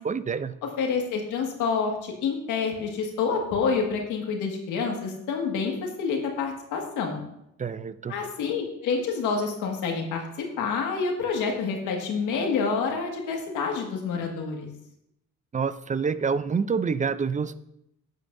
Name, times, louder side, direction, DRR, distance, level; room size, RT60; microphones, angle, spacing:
voice 1, 0.0-0.5 7.6-8.1 15.5-17.5, right 5 dB, 25° right, 14 dB, 0.4 m, -27 dB
voice 2, 0.8-7.2 8.1-14.7, left 5 dB, 90° left, 1 dB, 1.8 m, -28 dB
11.0 x 9.0 x 2.6 m, 0.80 s
cardioid pair, 90°, 30 cm